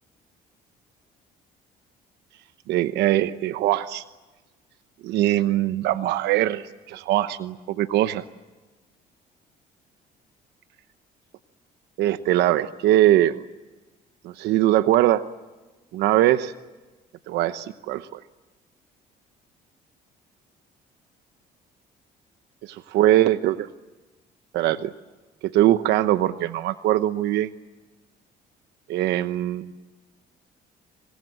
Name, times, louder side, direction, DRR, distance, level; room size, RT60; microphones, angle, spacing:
voice 1, 2.7-4.0 5.0-8.2 12.0-13.4 14.2-15.2 15.9-16.5 17.3-18.2 22.9-23.7 24.5-24.9 25.4-27.5 28.9-29.7, right 13 dB, 85° right, 12 dB, 1.0 m, -21 dB
28.5 x 24.5 x 7.7 m, 1.2 s
cardioid pair, 110°, 17 cm